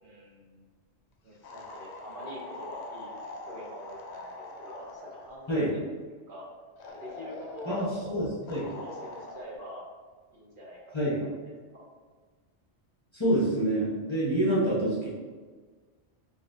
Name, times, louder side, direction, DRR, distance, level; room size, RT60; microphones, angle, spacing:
voice 1, 0.0-0.7 1.2-3.2 3.5-5.8 6.3-6.5 6.9-8.2 8.8-9.8 10.3-10.9 11.2-11.3 11.7-11.8, equal, 55° right, -4 dB, 0.8 m, -44 dB
sound 1, 1.4-5.4 6.8-8.0 8.5-9.4, left 2 dB, 75° left, 0.8 m, -43 dB
voice 2, 5.5-5.8 7.7-8.6 10.9-11.2 13.1-15.1, right 1 dB, 30° left, -8 dB, 0.7 m, -27 dB
4.1 x 2.6 x 2.5 m, 1.5 s
omnidirectional pair, 1.2 m